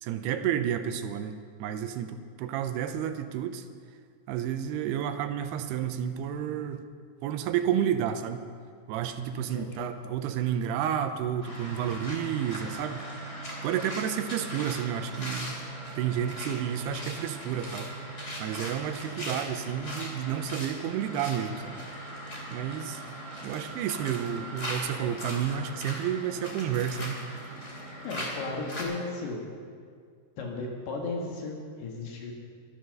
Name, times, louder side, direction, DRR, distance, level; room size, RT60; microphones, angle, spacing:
voice 1, 0.0-3.6 4.3-6.8 7.2-8.4 8.9-13.0 13.6-15.5 16.0-17.9 18.4-21.8 22.5-23.0 23.4-27.2, right 9 dB, 85° right, 8 dB, 2.6 m, -31 dB
voice 2, 9.5-9.9 28.0-29.4 30.4-32.3, left 3 dB, 75° left, 0 dB, 3.5 m, -35 dB
sound 1, 11.4-28.8, right 1 dB, 25° left, 2.0 m, -39 dB
12.5 x 12.0 x 6.5 m, 2.1 s
omnidirectional pair, 4.8 m